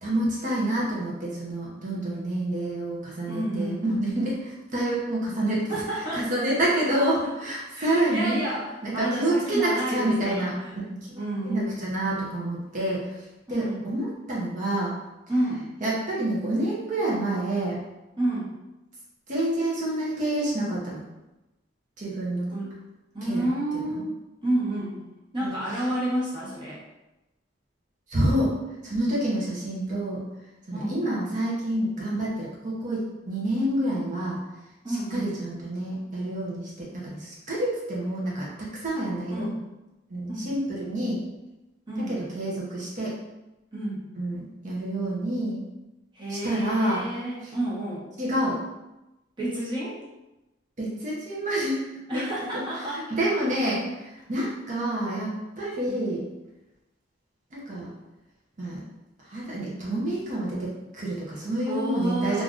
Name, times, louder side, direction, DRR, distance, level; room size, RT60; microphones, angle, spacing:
voice 1, 0.0-8.4 8.8-11.1 11.4-14.9 15.8-17.8 19.3-21.0 22.0-22.5 23.3-24.0 25.4-25.8 28.1-28.5 28.8-30.2 30.7-34.4 34.9-39.5 40.1-41.2 42.1-43.2 44.2-45.6 46.3-47.0 47.4-47.5 48.2-48.6 50.8-51.8 52.1-52.2 52.5-56.2 57.5-57.9 58.6-58.8 59.2-62.4, right 1 dB, 45° right, -5 dB, 0.7 m, -28 dB
voice 2, 3.3-3.8 5.7-6.3 7.0-7.1 7.7-10.8 11.1-11.9 13.5-13.9 15.3-15.7 18.2-18.5 22.5-22.8 23.1-24.1 24.4-25.0 25.3-26.8 30.7-31.0 34.8-35.3 39.3-39.6 40.3-40.5 41.9-42.3 43.7-44.1 46.1-48.1 49.4-50.0 52.1-53.0 53.3-53.4 53.9-54.0 55.9-56.0 61.6-62.4, right 1 dB, 25° right, -7 dB, 1.1 m, -30 dB
3.4 x 2.5 x 2.5 m, 1.0 s
head